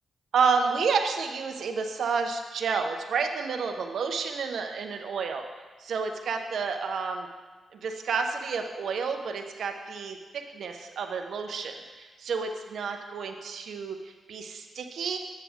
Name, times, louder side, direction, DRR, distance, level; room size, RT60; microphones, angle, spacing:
voice 1, 0.3-5.4 5.8-7.3 7.8-15.2, right 5 dB, 75° right, 5 dB, 0.7 m, -30 dB
7.5 x 7.2 x 3.5 m, 1.4 s
cardioid pair, 80°, 0 cm